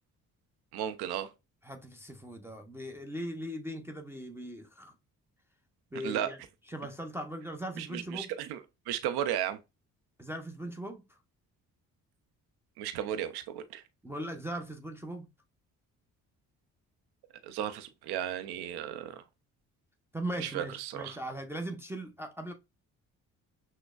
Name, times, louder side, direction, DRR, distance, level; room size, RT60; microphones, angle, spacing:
voice 1, 0.7-1.3 6.0-6.3 7.8-8.6 8.9-9.6 12.8-13.8 17.4-19.2 20.4-21.2, right 10 dB, 70° right, 0.6 m, -34 dB
voice 2, 1.6-4.9 5.9-6.4 6.7-8.3 10.2-11.0 14.0-15.3 20.1-22.5, right 1 dB, 5° right, 0.6 m, -39 dB
6.0 x 2.1 x 2.3 m
supercardioid pair, 55°, 40 cm